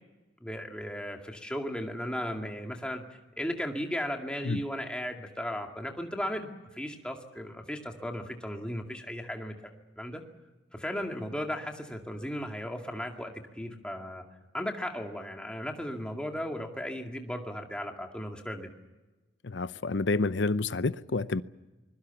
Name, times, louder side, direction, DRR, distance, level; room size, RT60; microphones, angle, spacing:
voice 1, 0.4-3.0 3.4-10.2 10.7-14.2 14.5-18.7, equal, 5° left, 2.2 m, -36 dB
voice 2, 19.4-21.4, left 3 dB, 75° left, 0.7 m, -29 dB
25.5 x 21.5 x 7.1 m
head